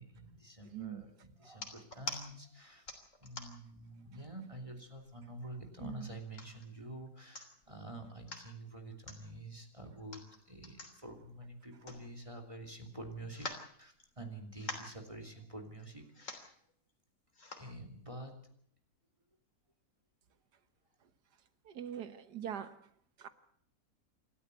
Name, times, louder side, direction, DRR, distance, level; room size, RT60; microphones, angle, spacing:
voice 1, 0.0-2.9 3.2-13.4 13.8-16.5 17.4-18.4, right 1 dB, 20° right, 5 dB, 3.2 m, -48 dB
sound 1, 1.5-2.2 2.9-3.7 4.3-4.4 4.7-5.4 6.0-6.7 7.1-7.2 7.3-7.7 8.1-8.5 9.0-9.2 10.0-12.5 12.8-12.9 13.3-14.3 14.5-15.0 15.8-15.9 16.1-16.5 17.3-17.7 18.3-18.4, left 3 dB, 50° left, 3.6 m, -45 dB
voice 2, 21.7-22.8 23.2-23.3, right 10 dB, 85° right, 11 dB, 1.8 m, -42 dB
28.0 x 13.0 x 8.1 m, 0.63 s
omnidirectional pair, 1.7 m